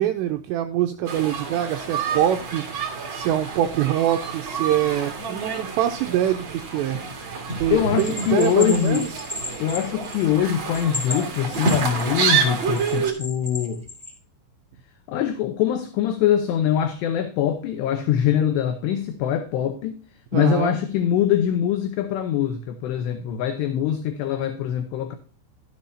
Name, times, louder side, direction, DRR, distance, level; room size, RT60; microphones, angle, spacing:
voice 1, 0.0-2.6 3.1-7.0 7.6-9.3 20.3-20.8, right 11 dB, 90° right, 2.5 m, -24 dB
sound 1, 1.1-13.1, right 5 dB, 65° right, 1.2 m, -28 dB
voice 2, 7.7-9.1 9.6-13.8 15.1-20.0 20.3-25.2, left 10 dB, 80° left, 2.6 m, -23 dB
Bell, 8.0-10.4 10.7-12.2 12.7-14.1, left 2 dB, ahead, 1.7 m, -33 dB
13.0 x 7.9 x 2.6 m
omnidirectional pair, 5.7 m